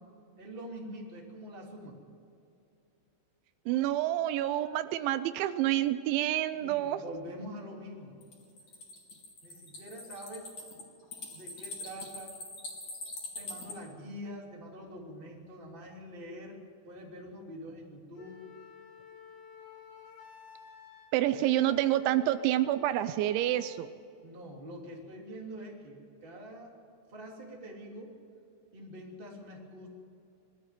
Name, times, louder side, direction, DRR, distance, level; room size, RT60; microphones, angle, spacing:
voice 1, 0.4-2.0 6.6-8.2 9.4-10.6 11.3-12.4 13.3-16.6 16.8-18.5 24.2-26.7 27.1-28.2 28.7-29.9, equal, 15° right, -1 dB, 2.4 m, -45 dB
voice 2, 3.7-7.0 21.1-23.9, right 13 dB, 85° right, 12 dB, 3.0 m, -28 dB
sound 1, 8.2-13.7, left 2 dB, 40° left, 4.5 m, -43 dB
Wind instrument woodwind instrument, 18.2-24.0, left 8 dB, 65° left, 3.2 m, -52 dB
22.0 x 13.0 x 9.4 m, 2.6 s
omnidirectional pair, 5.4 m